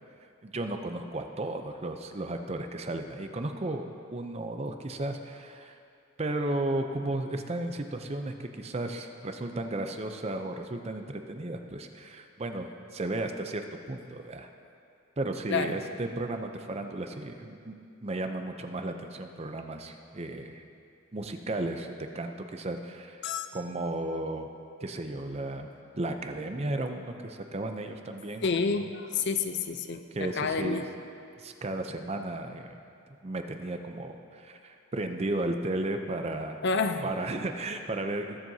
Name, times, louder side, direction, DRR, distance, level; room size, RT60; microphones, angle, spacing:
voice 1, 0.4-5.7 6.2-14.5 15.2-17.8 18.0-20.6 21.1-23.3 23.5-24.5 24.8-25.7 25.9-28.4 30.1-30.8 31.4-32.8 33.2-36.6 37.0-38.4, right 2 dB, 30° right, 6 dB, 0.5 m, -34 dB
voice 2, 28.4-30.8 36.6-37.1, left 4 dB, 55° left, 8 dB, 0.5 m, -29 dB
21.0 x 7.5 x 2.8 m, 2.5 s
head